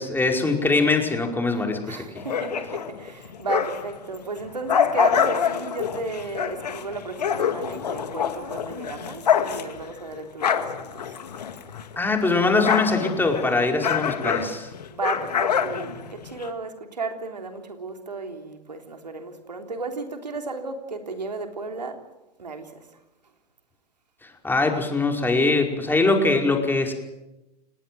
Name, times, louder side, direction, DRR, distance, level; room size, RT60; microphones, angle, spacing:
voice 1, 0.0-2.0 12.0-14.7 24.2-26.9, left 3 dB, 10° left, 2 dB, 5.1 m, -22 dB
voice 2, 1.8-11.2 14.9-22.0 22.4-22.9, right 3 dB, 85° right, 5 dB, 3.5 m, -34 dB
sound 1, 2.2-4.0 4.4-12.0 12.2-16.5, left 8 dB, 75° left, 2.1 m, -26 dB
29.0 x 19.5 x 7.8 m, 0.97 s
figure-of-eight pair, 95°, 21 cm